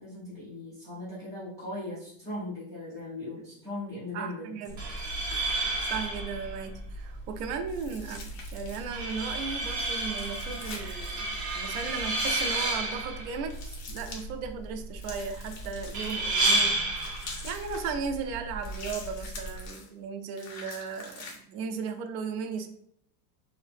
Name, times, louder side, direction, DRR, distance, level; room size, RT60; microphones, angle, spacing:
voice 1, 0.0-4.6, left 2 dB, 10° left, -11 dB, 0.3 m, -39 dB
voice 2, 4.1-4.8 5.3-16.8 17.4-22.7, right 5 dB, 60° right, 7 dB, 0.5 m, -36 dB
sound 1, 4.7-19.7, right 2 dB, 35° right, 1.0 m, -32 dB
sound 2, 7.7-9.0 10.1-11.2 12.2-12.6 13.5-14.3 15.0-16.3 16.9-17.9 18.6-19.9 20.4-21.4, left 3 dB, 35° left, 0.8 m, -44 dB
2.9 x 2.8 x 3.3 m, 0.69 s
supercardioid pair, 165°, 49 cm